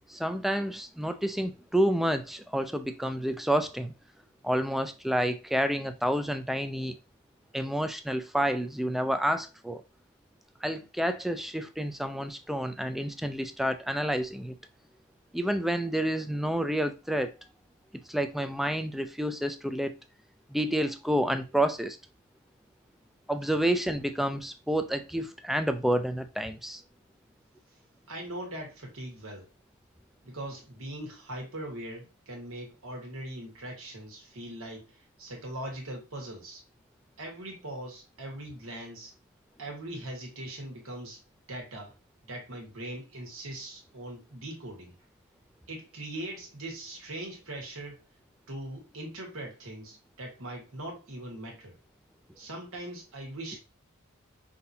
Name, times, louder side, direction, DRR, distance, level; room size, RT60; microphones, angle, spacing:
voice 1, 0.1-3.9 4.4-7.0 7.5-9.8 10.6-14.6 15.3-17.3 18.1-19.9 20.5-22.0 23.3-26.8, equal, ahead, 0.3 m, -29 dB
voice 2, 28.1-29.5 30.2-36.6 37.2-39.1 39.6-41.2 41.5-41.9 42.3-44.9 45.7-48.0 48.5-51.7 52.4-53.6, right 1 dB, 70° right, 1.5 m, -40 dB
5.6 x 2.8 x 2.7 m
head